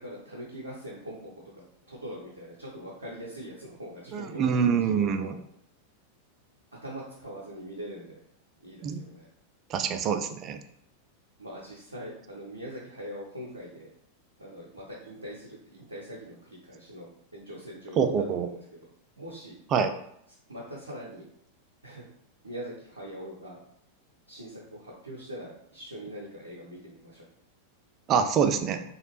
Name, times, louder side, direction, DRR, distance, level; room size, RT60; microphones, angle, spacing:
voice 1, 0.0-1.3 1.6-5.3 6.8-8.2 8.6-9.3 11.4-13.9 14.4-18.8 19.2-19.5 20.5-21.3 21.8-22.0 22.4-23.6 24.3-27.2, equal, 80° right, -5 dB, 0.6 m, -42 dB
voice 2, 4.1-5.3 8.8-9.0 9.7-10.6 18.0-18.5 19.7-19.9 28.1-28.8, right 6 dB, 30° right, 8 dB, 0.3 m, -25 dB
3.0 x 2.4 x 3.0 m, 0.71 s
figure-of-eight pair, 90°, 0 cm